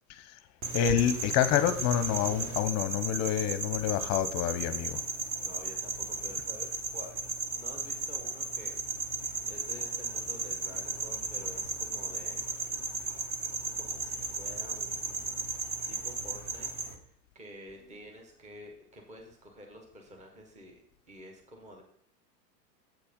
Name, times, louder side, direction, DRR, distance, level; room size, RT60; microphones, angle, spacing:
sound 1, 0.6-16.9, right 3 dB, 35° right, 1.5 m, -35 dB
voice 1, 0.7-5.0, left 10 dB, 35° left, 0.7 m, -28 dB
voice 2, 2.1-2.4 5.4-8.8 9.5-12.5 13.7-16.7 17.0-21.8, equal, 15° right, 1.2 m, -50 dB
7.9 x 4.5 x 5.2 m
hypercardioid pair, 120°, 49 cm